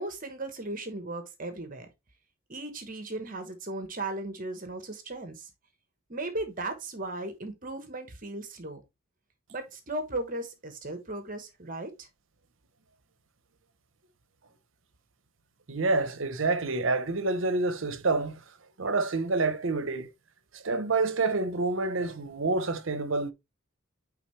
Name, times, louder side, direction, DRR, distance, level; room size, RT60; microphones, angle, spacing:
voice 1, 0.0-1.9 2.5-5.5 6.1-8.8 9.5-12.1, right 2 dB, 40° right, 1.1 m, -36 dB
voice 2, 15.7-18.4 18.8-20.1 20.5-23.3, right 3 dB, 70° right, 0.9 m, -28 dB
9.2 x 3.6 x 3.1 m
head